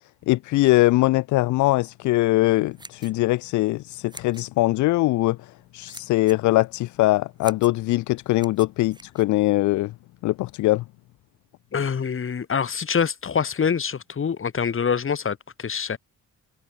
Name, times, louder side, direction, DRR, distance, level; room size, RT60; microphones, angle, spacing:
voice 1, 0.3-5.4 5.7-9.9 10.2-10.8, left 18 dB, 75° left, 0.5 m, -21 dB
sound 1, 2.5-9.9, right 2 dB, 15° right, 4.2 m, -47 dB
voice 2, 11.7-16.0, left 6 dB, 45° left, 4.3 m, -25 dB
cardioid pair, 90°, 30 cm